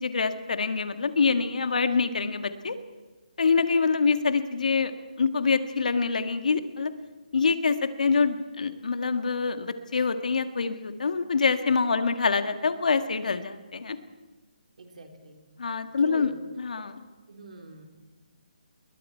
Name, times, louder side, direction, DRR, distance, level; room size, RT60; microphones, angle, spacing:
voice 1, 0.0-2.8 3.4-4.9 5.2-6.9 7.3-14.0 15.6-16.3 16.6-17.0, left 5 dB, 65° left, 8 dB, 1.8 m, -25 dB
voice 2, 14.8-15.4 16.0-16.3 16.8-16.9 17.3-17.8, right 3 dB, 60° right, 2 dB, 4.0 m, -43 dB
28.5 x 21.5 x 4.6 m, 1.3 s
hypercardioid pair, 165°, 5 cm